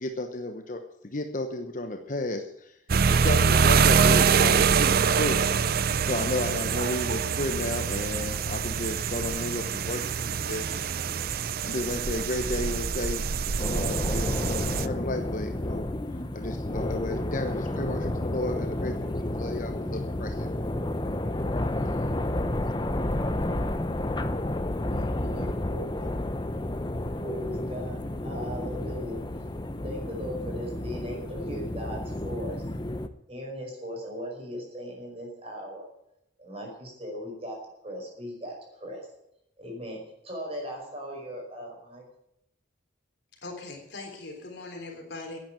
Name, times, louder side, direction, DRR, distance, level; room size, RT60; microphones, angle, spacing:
voice 1, 0.0-2.8 3.1-5.4 6.0-10.8 11.6-15.9 16.3-20.7, left 1 dB, 45° left, 5 dB, 1.0 m, -33 dB
sound 1, 2.9-14.9, right 6 dB, 50° right, 0.5 m, -25 dB
sound 2, 13.6-33.1, left 1 dB, 25° left, 0.7 m, -31 dB
voice 2, 24.8-26.2 27.2-29.2 29.8-32.6 33.3-35.9 36.4-37.6 37.8-39.1 39.6-40.0 40.2-42.0, equal, 30° right, 0 dB, 5.4 m, -38 dB
voice 3, 43.4-45.4, left 2 dB, 60° left, 2 dB, 3.6 m, -40 dB
11.5 x 9.2 x 8.8 m, 0.78 s
head